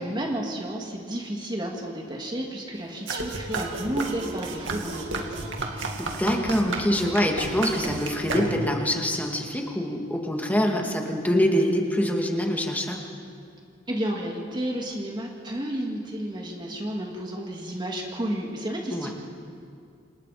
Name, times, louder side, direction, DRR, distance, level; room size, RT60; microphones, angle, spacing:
voice 1, 0.0-5.4 13.9-19.1, right 1 dB, 25° right, 0 dB, 2.4 m, -31 dB
sound 1, 3.1-8.9, right 2 dB, 80° right, 2.5 m, -32 dB
voice 2, 6.0-13.0 18.9-19.1, equal, 10° left, 1 dB, 2.4 m, -25 dB
28.0 x 27.5 x 5.2 m, 2.3 s
head